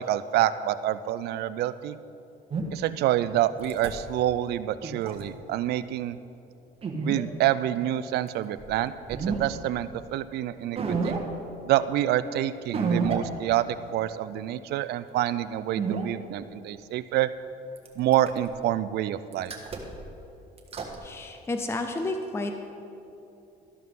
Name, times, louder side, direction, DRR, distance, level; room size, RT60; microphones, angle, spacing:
voice 1, 0.0-2.0 2.7-6.2 7.0-11.2 11.7-17.3 18.0-19.5, right 13 dB, 75° right, 14 dB, 0.5 m, -27 dB
sound 1, 2.5-2.6 3.6-3.9 4.8-5.2 6.8-7.2 8.6-8.7 9.0-9.4 9.9-10.0 10.8-11.2 12.7-13.2 13.7-13.8 15.7-16.0 17.8-18.5 19.3-20.1 20.6-21.0, right 5 dB, 35° right, 1.4 m, -29 dB
voice 2, 21.0-22.5, left 2 dB, 15° left, 5 dB, 0.6 m, -31 dB
12.5 x 11.5 x 3.7 m, 2.8 s
cardioid pair, 110°, 17 cm